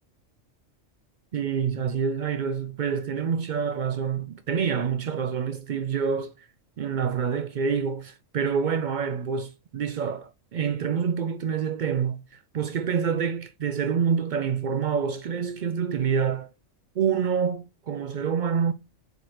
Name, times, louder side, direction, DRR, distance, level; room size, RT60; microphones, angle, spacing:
voice 1, 1.3-6.5 6.8-12.2 12.5-16.5 17.0-18.7, right 7 dB, 75° right, 0.4 m, -27 dB
4.6 x 4.5 x 4.7 m
omnidirectional pair, 1.3 m